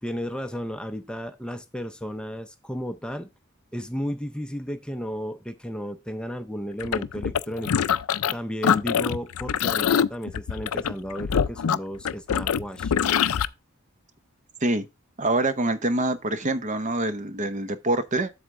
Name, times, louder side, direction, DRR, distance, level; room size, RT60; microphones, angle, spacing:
voice 1, 0.0-3.3 3.7-7.8 8.3-12.9, equal, 5° left, 0.5 m, -33 dB
sound 1, 6.8-8.3 8.6-13.5, left 8 dB, 85° left, 0.4 m, -24 dB
voice 2, 15.2-18.3, right 2 dB, 35° right, 0.8 m, -25 dB
7.9 x 6.4 x 3.7 m
head